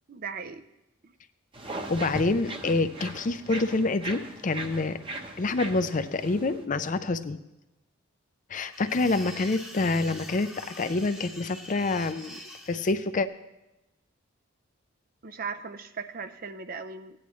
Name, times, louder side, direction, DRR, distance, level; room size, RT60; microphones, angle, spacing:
voice 1, 0.1-0.6 1.0-1.1 15.2-17.1, right 5 dB, 45° right, 10 dB, 0.6 m, -37 dB
sound 1, 1.5-6.6, right 2 dB, 25° right, 0.9 m, -39 dB
voice 2, 1.9-5.0 5.4-7.4 8.5-12.4 12.7-13.3, left 3 dB, 40° left, 11 dB, 0.5 m, -27 dB
sound 2, 8.6-12.9, left 1 dB, 5° right, 1.0 m, -44 dB
17.0 x 10.0 x 3.1 m, 0.95 s
head